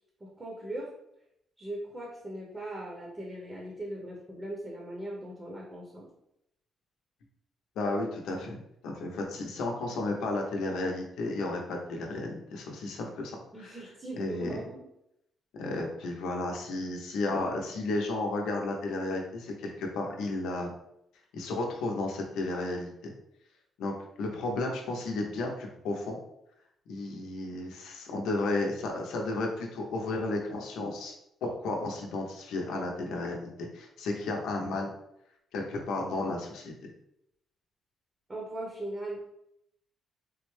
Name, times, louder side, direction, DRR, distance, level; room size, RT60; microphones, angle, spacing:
voice 1, 0.2-0.9 1.6-6.1 13.5-14.9 38.3-39.3, right 1 dB, 20° right, -2 dB, 0.8 m, -39 dB
voice 2, 7.8-13.8 14.2-14.6 15.6-20.7 21.3-23.1 23.8-26.2 26.9-31.1 31.4-34.9 35.5-36.7, left 2 dB, 85° left, 1 dB, 0.7 m, -33 dB
3.6 x 2.1 x 3.1 m, 0.78 s
cardioid pair, 90°, 0 cm